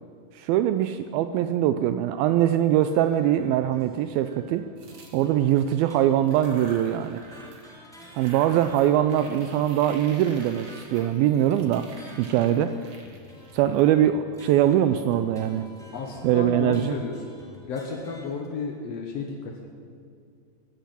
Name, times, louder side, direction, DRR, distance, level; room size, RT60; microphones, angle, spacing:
voice 1, 0.3-4.7 5.1-7.2 8.1-11.9 12.2-12.7 13.5-15.7 16.2-17.0, right 11 dB, 85° right, 10 dB, 2.1 m, -22 dB
sound 1, 2.4-18.5, left 1 dB, ahead, 2.2 m, -51 dB
sound 2, 4.8-5.8 6.2-7.7 8.0-14.4, right 3 dB, 45° right, 2.0 m, -48 dB
voice 2, 15.9-17.1 17.7-19.7, left 4 dB, 80° left, 2 dB, 1.4 m, -33 dB
16.5 x 10.0 x 8.4 m, 2.3 s
omnidirectional pair, 4.7 m